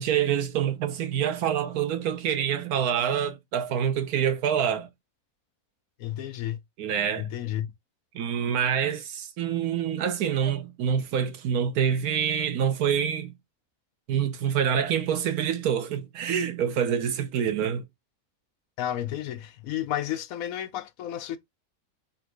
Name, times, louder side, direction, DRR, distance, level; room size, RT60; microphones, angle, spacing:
voice 1, 0.0-4.9 6.8-7.3 8.1-13.3 14.1-17.8, right 8 dB, 90° right, 1.3 m, -26 dB
voice 2, 6.0-6.6 7.2-7.7 18.8-21.4, left 12 dB, 75° left, 1.0 m, -32 dB
4.3 x 2.6 x 4.6 m
omnidirectional pair, 1.5 m